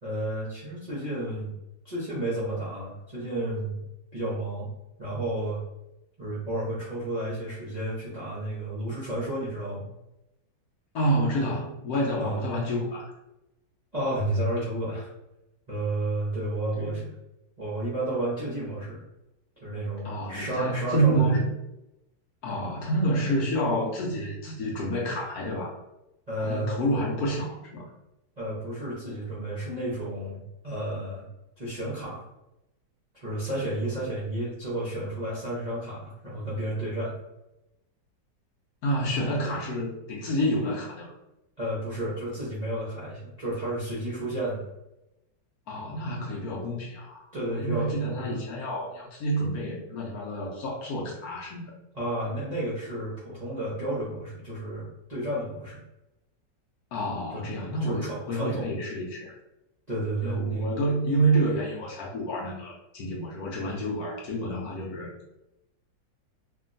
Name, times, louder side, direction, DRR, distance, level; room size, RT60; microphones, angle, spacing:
voice 1, 0.0-1.5 1.8-3.8 4.1-4.7 5.0-5.6 6.2-9.9 12.2-12.4 13.9-15.1 15.7-17.1 17.6-19.0 19.6-21.4 26.3-26.8 28.4-31.2 31.6-32.2 33.1-37.2 41.6-44.7 47.3-48.4 51.9-55.9 57.3-57.4 57.8-58.7 59.9-60.7, right 1 dB, 45° right, -9 dB, 0.5 m, -31 dB
voice 2, 10.9-13.1 16.8-17.0 20.0-21.5 22.4-25.8 26.4-27.9 38.8-41.1 45.7-51.6 56.9-59.4 60.2-65.1, right 1 dB, 70° left, -3 dB, 1.0 m, -28 dB
2.8 x 2.5 x 2.5 m, 0.91 s
omnidirectional pair, 2.0 m